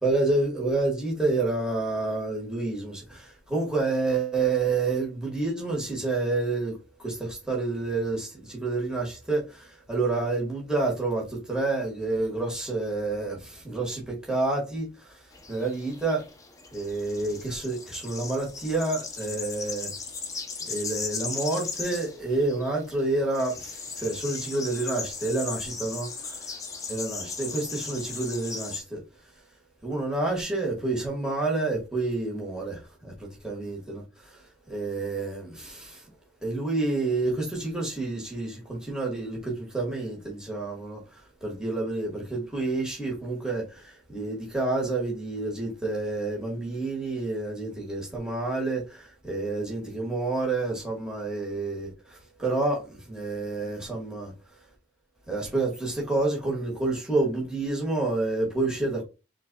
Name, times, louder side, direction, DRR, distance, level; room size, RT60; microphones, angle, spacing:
voice 1, 0.0-16.2 16.7-19.9 20.6-26.3 26.9-29.0 29.8-36.0 36.4-54.3 55.3-59.0, right 3 dB, 5° right, 1.7 m, -29 dB
sound 1, 15.3-28.8, left 4 dB, 15° left, 0.7 m, -37 dB
4.5 x 3.9 x 2.3 m
head